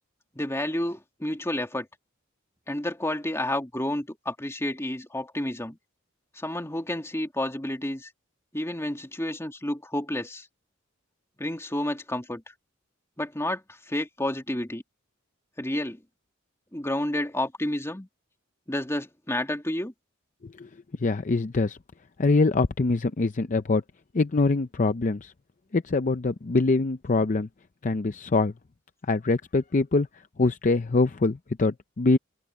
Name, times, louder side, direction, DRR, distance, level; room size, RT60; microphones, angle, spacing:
voice 1, 0.3-1.9 2.7-5.8 6.3-8.1 8.5-10.5 11.4-12.4 13.2-14.8 15.6-16.0 16.7-18.1 18.7-19.9, left 1 dB, 15° left, 2.6 m, -30 dB
voice 2, 21.0-21.8 22.2-23.8 24.1-25.3 25.7-27.5 27.8-28.5 29.1-30.1 30.4-32.2, left 3 dB, 40° left, 0.5 m, -24 dB
head